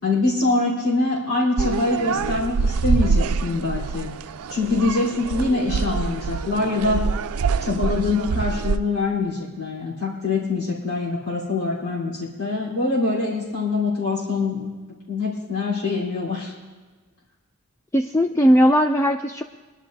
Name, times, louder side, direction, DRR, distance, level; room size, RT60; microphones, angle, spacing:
voice 1, 0.0-4.1 4.5-7.1 7.6-14.7 15.1-16.5, left 3 dB, 80° left, -7 dB, 3.5 m, -24 dB
sound 1, 1.6-8.8, right 4 dB, 80° right, 0.4 m, -25 dB
voice 2, 17.9-19.4, equal, 10° left, 5 dB, 0.3 m, -18 dB
22.5 x 11.5 x 2.6 m, 1.4 s
head